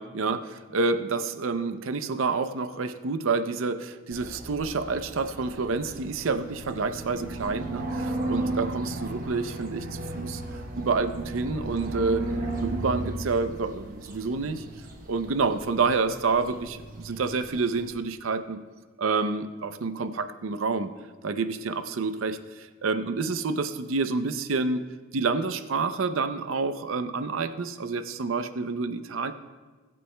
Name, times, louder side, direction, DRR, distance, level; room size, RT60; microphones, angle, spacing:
voice 1, 0.0-10.4 10.8-12.3 12.6-14.6 15.1-18.6 19.0-20.9 21.2-24.8 25.1-29.3, right 4 dB, 70° right, 10 dB, 0.6 m, -28 dB
sound 1, 4.1-17.9, right 2 dB, 40° right, 1.1 m, -35 dB
21.5 x 8.5 x 2.2 m, 1.3 s
head